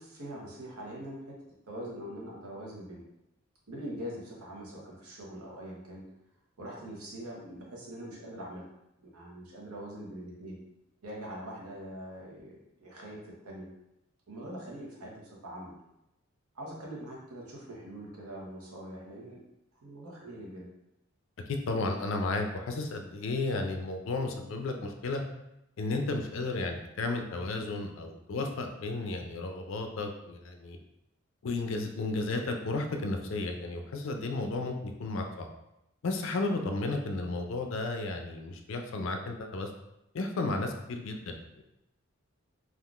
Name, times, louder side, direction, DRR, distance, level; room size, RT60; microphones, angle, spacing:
voice 1, 0.0-1.3 1.7-3.0 3.7-6.0 6.6-8.6 9.0-10.6 11.0-13.7 14.3-15.7 16.5-19.4 19.8-20.7, right 1 dB, 85° right, -3 dB, 0.9 m, -43 dB
voice 2, 21.5-25.2 25.8-30.8 31.4-35.5 36.0-39.7 40.1-41.6, left 2 dB, 60° left, 4 dB, 0.4 m, -33 dB
3.6 x 2.4 x 2.4 m, 0.87 s
head